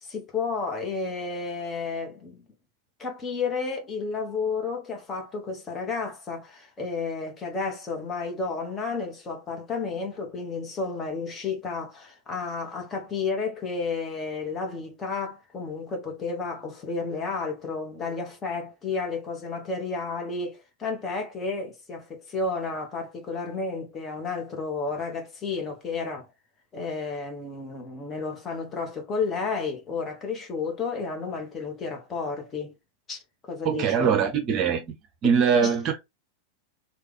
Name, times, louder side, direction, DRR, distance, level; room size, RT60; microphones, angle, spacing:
voice 1, 0.0-2.4 3.0-26.3 26.7-32.7 33.1-34.2 35.5-35.7, left 4 dB, 20° left, 1.2 m, -32 dB
voice 2, 33.6-34.9 35.2-36.0, right 7 dB, 35° right, 0.7 m, -22 dB
3.3 x 2.4 x 3.3 m
figure-of-eight pair, 90°, 0 cm